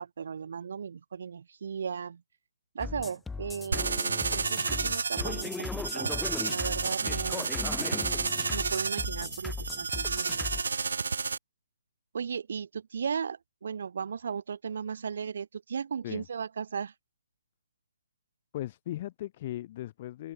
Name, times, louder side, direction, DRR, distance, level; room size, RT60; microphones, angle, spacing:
voice 1, 0.0-2.2 2.7-4.0 4.3-7.5 8.5-10.5 12.1-16.9, right 6 dB, 60° right, 2.8 m, -36 dB
sound 1, 2.8-10.6, left 4 dB, 5° left, 1.1 m, -38 dB
sound 2, 3.7-11.4, right 5 dB, 75° right, 0.9 m, -31 dB
voice 2, 18.5-20.3, left 14 dB, 35° left, 1.3 m, -37 dB
hypercardioid pair, 155°, 0 cm